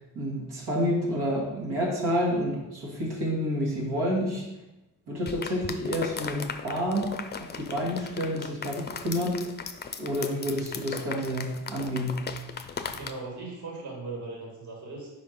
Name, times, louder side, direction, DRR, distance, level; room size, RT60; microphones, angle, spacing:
voice 1, 0.1-4.5 5.1-7.1 7.4-9.4 10.0-12.3, equal, 85° right, -5 dB, 2.0 m, -29 dB
sound 1, 5.3-13.1, left 6 dB, 30° left, 0.4 m, -38 dB
voice 2, 12.8-15.1, right 3 dB, 50° right, -2 dB, 1.7 m, -38 dB
5.1 x 4.4 x 5.1 m, 1.0 s
cardioid pair, 115°, 38 cm